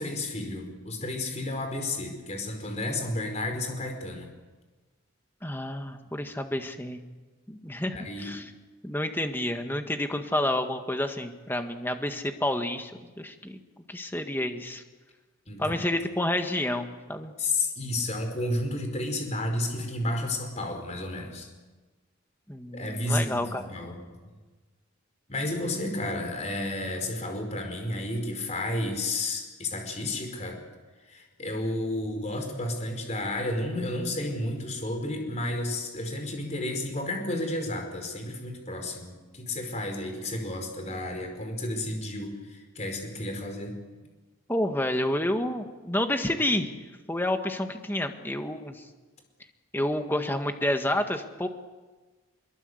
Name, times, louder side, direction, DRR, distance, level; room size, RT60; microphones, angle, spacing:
voice 1, 0.0-4.3 7.9-8.3 15.5-15.8 17.4-21.5 22.7-24.3 25.3-30.6 31.0-43.7, left 2 dB, 30° left, 4 dB, 4.8 m, -32 dB
voice 2, 5.4-7.0 7.5-8.5 8.8-12.9 13.2-13.6 13.9-14.8 15.6-17.3 22.5-23.6 44.5-46.8 47.1-48.8 49.7-51.5, left 1 dB, 10° left, 6 dB, 1.7 m, -29 dB
25.0 x 23.0 x 8.0 m, 1.3 s
head